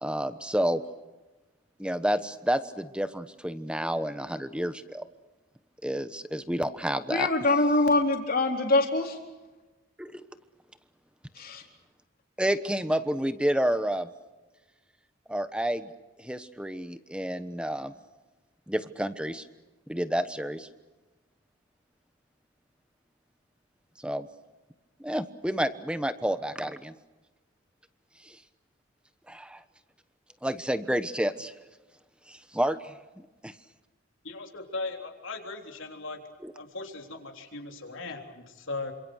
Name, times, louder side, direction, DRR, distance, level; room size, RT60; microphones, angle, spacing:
voice 1, 0.0-0.8 1.8-5.0 5.8-7.3 10.0-10.2 12.4-14.1 15.3-15.9 16.2-17.9 18.7-19.5 19.9-20.7 24.0-24.3 25.0-26.9 28.2-28.4 29.3-29.6 30.4-31.5 32.3-33.0 33.4-33.5 36.4-36.5, equal, 5° right, 11 dB, 1.1 m, -29 dB
voice 2, 7.1-9.2 11.4-11.6, left 2 dB, 45° left, 2 dB, 4.1 m, -24 dB
voice 3, 34.2-36.2 36.5-38.9, left 3 dB, 65° left, 3 dB, 3.7 m, -38 dB
28.0 x 26.5 x 6.4 m, 1.2 s
head